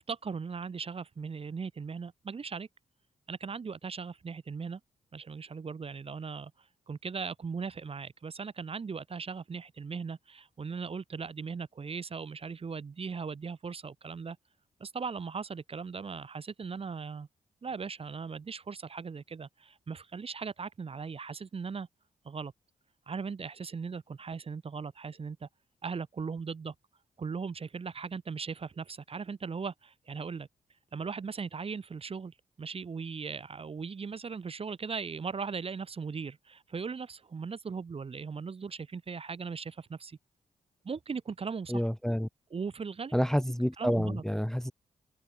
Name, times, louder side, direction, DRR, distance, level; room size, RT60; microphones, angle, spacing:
voice 1, 0.1-2.7 3.3-4.8 5.1-6.5 6.9-14.4 14.8-17.3 17.6-21.9 22.2-22.5 23.1-25.5 25.8-26.7 27.2-30.5 30.9-40.2 40.8-41.8 42.5-43.2 43.8-44.2, right 5 dB, 40° right, 0.9 m, -38 dB
voice 2, 41.7-42.3 43.1-44.7, equal, 5° left, 0.7 m, -28 dB
cardioid pair, 60°, 15 cm